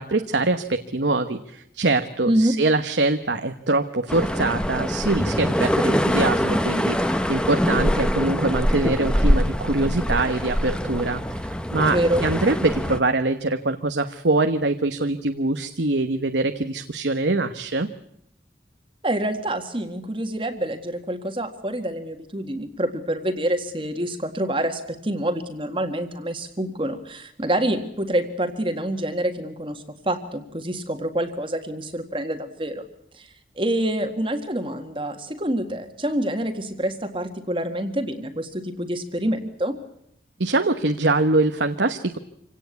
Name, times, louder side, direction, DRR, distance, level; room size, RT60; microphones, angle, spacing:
voice 1, 0.0-17.9 40.4-42.2, right 2 dB, 85° right, 8 dB, 1.2 m, -23 dB
sound 1, 4.1-13.0, equal, 5° left, 1.1 m, -23 dB
voice 2, 11.9-12.2 19.0-32.8 33.1-33.3 33.6-39.7, right 1 dB, 30° right, 6 dB, 1.8 m, -26 dB
26.5 x 17.5 x 8.4 m, 0.77 s
head